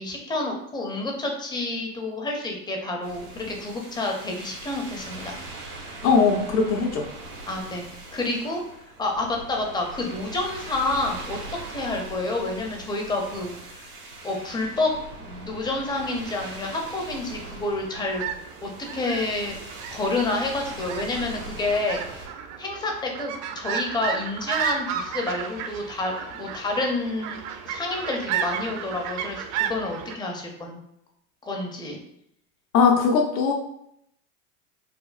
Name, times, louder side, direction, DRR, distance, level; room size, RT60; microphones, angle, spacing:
voice 1, 0.0-5.4 7.5-7.8 8.1-8.6 9.0-11.4 11.7-13.9 14.2-18.2 18.6-19.6 19.9-22.3 22.6-27.4 27.7-30.8 31.4-32.0, left 2 dB, 10° left, 1 dB, 0.4 m, -29 dB
sound 1, 3.0-22.3, right 2 dB, 90° right, 1.3 m, -40 dB
voice 2, 6.0-7.1 32.7-33.5, left 5 dB, 85° left, 1 dB, 0.7 m, -20 dB
sound 2, 17.8-30.2, right 8 dB, 45° right, 0.5 m, -33 dB
5.2 x 2.1 x 2.4 m, 0.76 s
hypercardioid pair, 115°, 45 cm